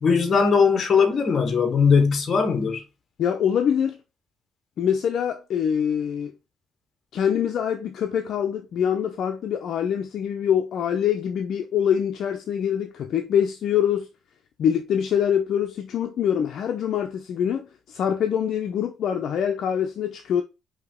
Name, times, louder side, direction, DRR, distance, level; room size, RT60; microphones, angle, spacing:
voice 1, 0.0-2.8, left 5 dB, 35° left, 1.1 m, -19 dB
voice 2, 3.2-4.0 4.8-6.3 7.1-14.1 14.6-20.4, left 8 dB, 55° left, 0.5 m, -24 dB
5.1 x 2.8 x 3.6 m
cardioid pair, 165°, 0 cm